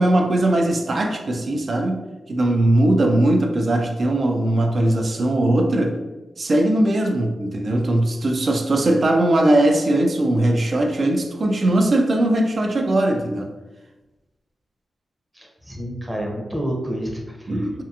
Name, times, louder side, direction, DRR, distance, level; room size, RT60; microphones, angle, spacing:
voice 1, 0.0-2.0 2.3-6.0 6.4-13.5 17.5-17.8, right 1 dB, 55° right, 3 dB, 0.4 m, -19 dB
voice 2, 15.3-17.8, right 1 dB, 15° right, 0 dB, 0.6 m, -29 dB
2.8 x 2.4 x 2.3 m, 1.1 s
cardioid pair, 60°, 0 cm